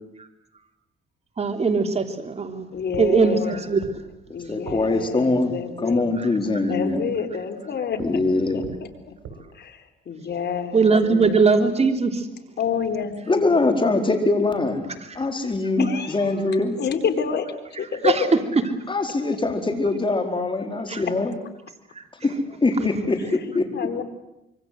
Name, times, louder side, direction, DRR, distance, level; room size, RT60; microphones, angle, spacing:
voice 1, 1.4-2.7 3.0-3.8 6.2-6.3 10.7-12.3 18.0-18.2 20.9-21.0 21.9-22.0, right 4 dB, 30° right, 6 dB, 3.4 m, -20 dB
voice 2, 2.7-3.8 4.3-6.1 6.7-8.2 8.5-9.1 9.5-11.5 12.6-13.8 15.8-18.4 23.2-23.4 23.7-24.0, left 6 dB, 60° left, 7 dB, 4.0 m, -29 dB
sound 1, 2.7-5.5 7.9-9.4, right 5 dB, 80° right, 5.6 m, -43 dB
voice 3, 4.5-5.5 5.8-7.0 8.0-8.7 13.3-16.8 18.9-21.4 22.2-23.7, left 2 dB, 25° left, 5 dB, 4.7 m, -23 dB
25.5 x 24.0 x 7.9 m, 0.87 s
cardioid pair, 90°, 20 cm